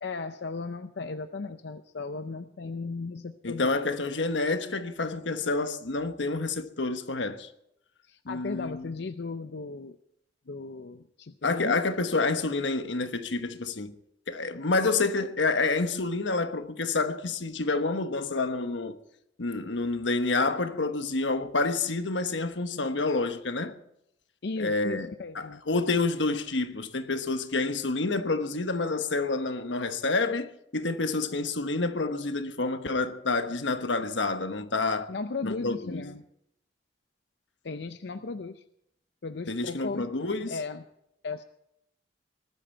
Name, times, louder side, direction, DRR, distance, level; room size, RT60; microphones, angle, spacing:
voice 1, 0.0-3.8 8.0-10.0 10.5-11.8 24.4-25.6 35.1-36.2 37.6-38.6 39.2-40.1 40.5-40.8 41.2-41.4, left 3 dB, 65° left, 0.6 m, -36 dB
voice 2, 3.4-7.5 8.2-8.9 11.4-13.9 14.3-19.0 19.4-23.7 24.6-35.1 35.4-36.0 39.5-40.6, left 3 dB, 90° left, 1.2 m, -28 dB
19.5 x 12.5 x 4.5 m
head